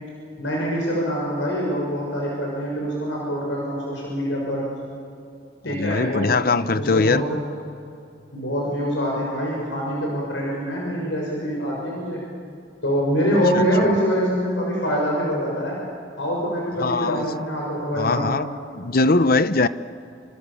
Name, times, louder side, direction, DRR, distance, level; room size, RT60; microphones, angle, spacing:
voice 1, 0.4-4.6 5.6-6.3 6.7-7.4 8.3-12.2 12.8-15.8 16.2-18.4, equal, 80° left, 6.4 m, -24 dB
voice 2, 5.6-7.2 13.5-13.9 16.8-17.3 17.9-18.5 18.7-19.7, left 3 dB, 50° left, 0.8 m, -21 dB
28.0 x 26.5 x 7.1 m
head